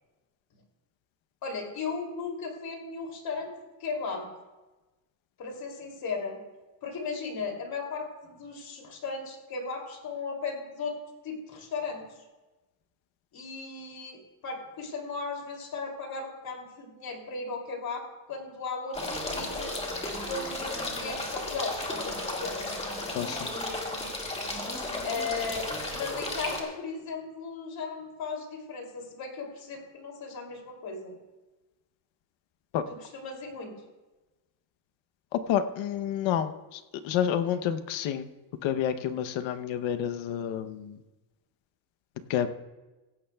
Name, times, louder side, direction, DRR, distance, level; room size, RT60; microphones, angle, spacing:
voice 1, 1.4-3.5 3.8-4.3 5.4-6.4 6.8-11.0 11.2-12.2 13.3-19.8 20.3-22.6 25.0-31.2 32.9-33.7, left 4 dB, 50° left, 2 dB, 2.9 m, -36 dB
sound 1, 18.9-26.6, left 1 dB, 15° left, 1.9 m, -34 dB
voice 2, 23.1-23.5 32.7-32.9 35.3-38.3 38.6-41.0 42.3-42.5, left 9 dB, 80° left, 10 dB, 0.9 m, -29 dB
17.0 x 15.5 x 2.3 m, 1.1 s
cardioid pair, 160°, 45 cm